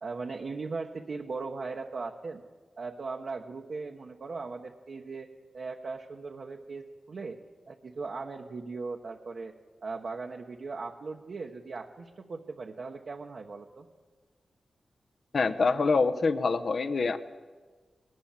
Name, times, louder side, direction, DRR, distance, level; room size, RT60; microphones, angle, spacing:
voice 1, 0.0-2.4 2.8-5.3 5.5-7.4 7.7-9.5 9.8-13.9, right 4 dB, 60° right, 0 dB, 1.2 m, -38 dB
voice 2, 15.3-17.2, left 4 dB, 55° left, 8 dB, 0.9 m, -25 dB
20.5 x 19.0 x 7.3 m, 1.4 s
wide cardioid pair, 115°, 0 cm